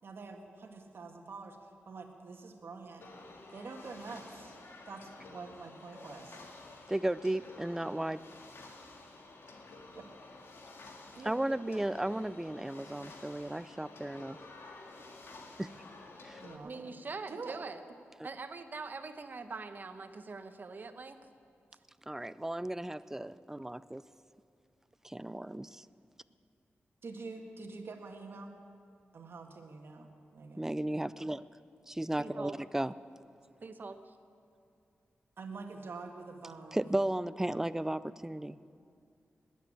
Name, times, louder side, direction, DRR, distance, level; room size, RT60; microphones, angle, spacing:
voice 1, 0.0-1.6 1.9-3.1 3.5-4.6 4.9-6.4 9.9-10.1 11.1-11.8 16.4-16.9 17.3-17.6 27.0-28.6 29.1-30.7 35.4-36.9, right 4 dB, 60° right, 3 dB, 1.7 m, -46 dB
sound 1, 3.0-16.6, left 3 dB, 70° left, 1.9 m, -51 dB
voice 2, 6.9-8.2 11.3-14.4 15.6-15.7 16.2-16.4 22.1-24.0 25.0-25.8 30.6-31.4 31.9-32.9 36.7-38.6, right 1 dB, 10° right, 16 dB, 0.4 m, -34 dB
voice 3, 16.6-17.8 18.2-21.2 32.2-32.6 33.6-34.2, right 4 dB, 45° right, 9 dB, 1.1 m, -43 dB
20.0 x 8.3 x 8.7 m, 2.5 s
wide cardioid pair, 95°, 4 cm